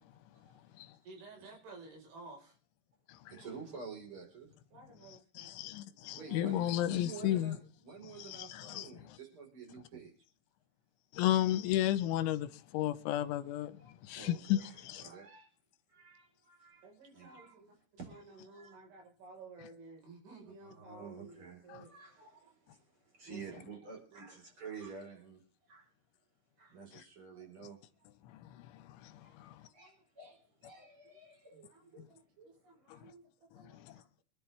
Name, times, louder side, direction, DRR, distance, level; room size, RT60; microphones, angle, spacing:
voice 1, 1.0-2.6 3.3-3.7 4.7-7.4 16.8-17.8 18.0-21.9 23.2-24.2 29.6-30.0 30.7-31.1 31.5-34.1, right 3 dB, 75° right, 6.9 m, -55 dB
voice 2, 3.3-4.5 6.1-10.1 13.8-15.5 15.9-16.8 17.1-17.6 18.0-18.8 20.6-25.4 25.7-25.9 26.6-27.8 29.2-32.1 32.4-32.6, right 5 dB, 30° right, 4.5 m, -50 dB
voice 3, 5.4-7.5 8.2-8.9 11.1-13.7 14.0-15.0 28.3-29.6 32.9-33.0 33.9-34.0, left 13 dB, 85° left, 3.4 m, -33 dB
25.5 x 11.0 x 3.4 m
omnidirectional pair, 5.4 m